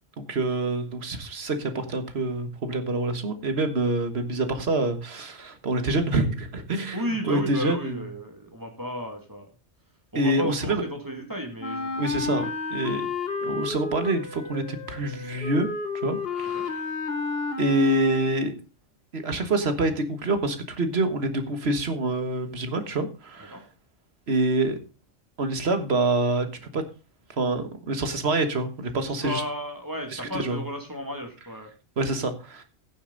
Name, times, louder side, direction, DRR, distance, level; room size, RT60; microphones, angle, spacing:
voice 1, 0.2-8.1 10.1-10.8 12.0-12.4 12.7-13.1 13.4-15.7 15.9-16.8 17.6-18.5 19.1-23.6 24.3-24.8 25.4-26.5 26.7-26.8 27.4-29.4 30.1-30.6 32.0-32.6, right 2 dB, 55° right, 8 dB, 1.7 m, -26 dB
voice 2, 6.9-9.5 10.1-12.1 12.3-12.5 16.5-16.7 23.5-23.6 29.1-31.7, equal, 15° right, 2 dB, 2.4 m, -33 dB
Wind instrument woodwind instrument, 11.6-18.6, left 4 dB, 50° left, 1.4 m, -31 dB
15.5 x 7.0 x 3.9 m, 0.31 s
omnidirectional pair, 1.3 m